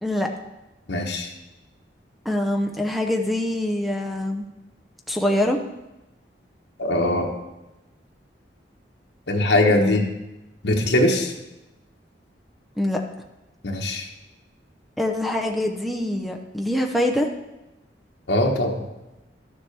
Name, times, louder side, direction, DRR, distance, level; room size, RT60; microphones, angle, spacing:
voice 1, 0.9-1.3 6.8-7.3 9.3-10.0 10.6-11.3 13.6-14.1 18.3-18.8, left 1 dB, 70° left, 0 dB, 1.2 m, -21 dB
voice 2, 2.2-4.5 5.1-5.6 9.7-10.1 12.8-13.0 15.0-17.3, left 1 dB, ahead, 3 dB, 0.6 m, -24 dB
12.0 x 7.2 x 3.4 m, 1.0 s
head